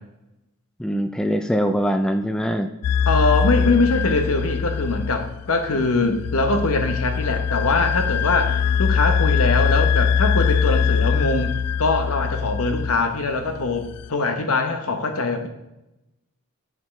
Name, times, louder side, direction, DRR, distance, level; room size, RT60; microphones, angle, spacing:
voice 1, 0.8-2.7 3.6-3.8, equal, 5° left, 7 dB, 0.3 m, -23 dB
sound 1, 2.8-14.1, left 6 dB, 90° left, 0.3 m, -23 dB
voice 2, 3.1-15.5, left 3 dB, 70° left, 6 dB, 1.0 m, -22 dB
8.0 x 7.2 x 3.3 m, 0.93 s
head